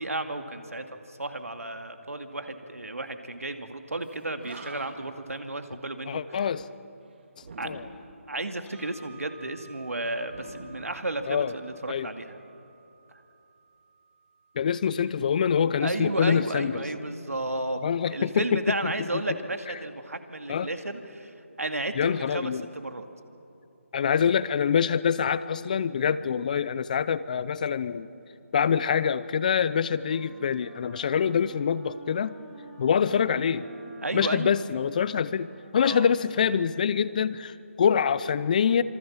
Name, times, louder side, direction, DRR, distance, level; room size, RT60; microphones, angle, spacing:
voice 1, 0.0-6.5 7.6-7.8 8.3-12.4 13.1-13.2 15.8-17.8 18.1-23.0 34.0-34.6 35.8-36.1, right 2 dB, 85° right, 7 dB, 2.3 m, -33 dB
Animal, 4.1-4.2 4.4-5.2 7.4-8.2 10.3-11.6, right 3 dB, 45° right, 3.0 m, -45 dB
voice 2, 6.1-6.7 7.6-7.9 11.3-11.5 11.9-12.1 14.6-16.8 17.8-18.9 20.5-20.7 22.0-22.7 23.9-28.1 28.5-32.4 32.8-33.7 34.1-38.8, left 7 dB, 35° left, 16 dB, 0.7 m, -25 dB
sound 1, 8.7-16.7, right 5 dB, 10° left, 3.0 m, -55 dB
Wind instrument woodwind instrument, 28.5-36.6, right 4 dB, 15° right, 2.7 m, -51 dB
27.0 x 24.0 x 7.3 m, 2.8 s
figure-of-eight pair, 160°, 8 cm